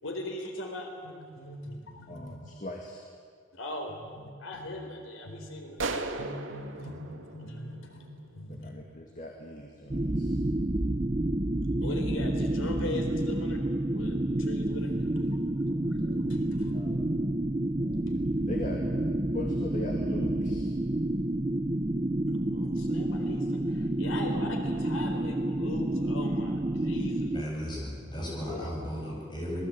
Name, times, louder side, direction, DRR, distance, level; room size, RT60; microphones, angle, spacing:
voice 1, 0.0-2.4 3.5-8.8 11.8-13.6 13.9-15.4 15.7-17.1 17.8-18.1 22.3-27.3 28.4-28.7, left 1 dB, 90° left, 3 dB, 4.0 m, -40 dB
voice 2, 2.1-3.0 8.5-10.4 16.7-17.0 18.5-18.8 19.3-20.7, left 1 dB, 40° left, 1 dB, 2.4 m, -40 dB
sound 1, 5.8-8.4, right 3 dB, 80° right, 2.1 m, -37 dB
sound 2, 9.9-27.4, right 1 dB, 25° right, 0.8 m, -29 dB
voice 3, 27.3-29.6, equal, 25° left, -3 dB, 7.8 m, -35 dB
26.0 x 20.0 x 8.8 m, 2.2 s
head